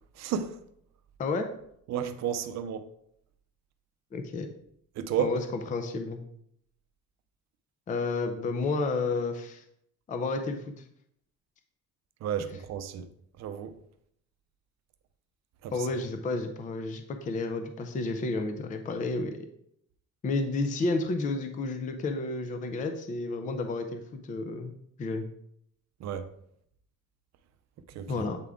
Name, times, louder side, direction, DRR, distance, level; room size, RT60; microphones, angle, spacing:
voice 1, 0.2-0.6 1.9-2.9 5.0-5.3 12.2-13.1 13.4-13.7 15.6-15.7 26.0-26.3 27.9-28.2, right 9 dB, 60° right, 0.6 m, -32 dB
voice 2, 1.2-1.5 4.1-4.5 5.2-6.2 7.9-9.6 10.1-10.8 12.4-12.5 15.7-19.5 20.2-24.7 25.0-25.3 28.1-28.4, left 3 dB, 25° left, 0.4 m, -31 dB
8.0 x 3.6 x 3.5 m
cardioid pair, 175°, 31 cm